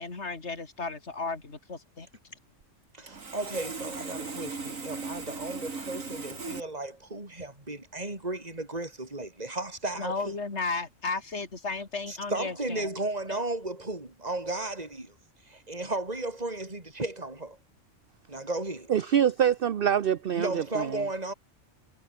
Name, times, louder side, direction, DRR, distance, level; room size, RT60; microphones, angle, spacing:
voice 1, 0.0-2.1 10.0-12.9 13.3-13.4, left 3 dB, 60° left, 3.4 m, -34 dB
Sawing, 2.6-2.7 3.1-6.6, right 4 dB, 90° right, 3.2 m, -38 dB
voice 2, 2.9-10.1 12.1-15.1 15.4-17.6 18.3-18.9 20.3-21.3, right 2 dB, 30° right, 4.6 m, -34 dB
voice 3, 18.9-21.0, right 9 dB, 50° right, 0.8 m, -25 dB
omnidirectional pair, 1.3 m